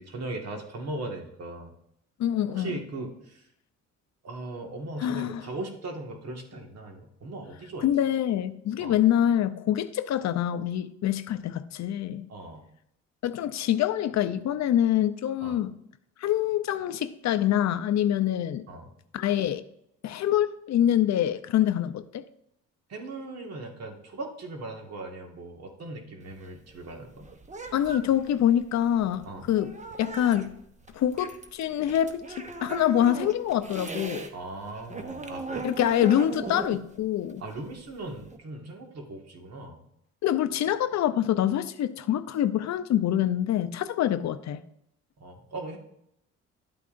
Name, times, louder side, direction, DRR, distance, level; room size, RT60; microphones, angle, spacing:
voice 1, 0.0-1.7 2.5-3.4 4.2-7.9 8.8-9.0 12.3-12.7 15.4-15.6 18.7-18.9 22.9-27.3 29.2-29.5 34.3-35.7 37.4-39.8 45.2-45.8, right 2 dB, 55° right, 1.8 m, -38 dB
voice 2, 2.2-2.8 5.0-5.4 7.8-12.3 13.2-15.7 16.2-18.7 19.1-19.6 20.0-22.2 27.7-29.7 30.0-30.5 30.9-34.3 35.6-37.4 40.2-44.6, left 11 dB, 65° left, 0.6 m, -25 dB
sound 1, 26.2-34.3 34.6-38.4, right 3 dB, 25° right, 0.9 m, -39 dB
11.5 x 8.3 x 2.6 m
cardioid pair, 90°, 30 cm